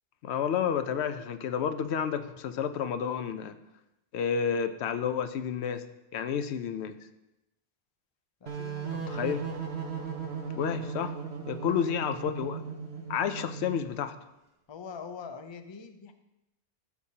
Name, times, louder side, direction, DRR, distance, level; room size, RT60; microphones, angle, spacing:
voice 1, 0.2-3.5 4.1-5.8 6.1-7.0 9.1-9.4 10.6-11.1 11.5-12.6 13.1-14.1, left 7 dB, 90° left, 10 dB, 0.9 m, -30 dB
voice 2, 8.4-9.2 11.6-11.9 14.7-16.1, left 5 dB, 35° left, 8 dB, 0.5 m, -44 dB
sound 1, 8.5-14.0, right 6 dB, 80° right, 1.4 m, -37 dB
14.0 x 6.9 x 2.8 m, 0.92 s
omnidirectional pair, 1.1 m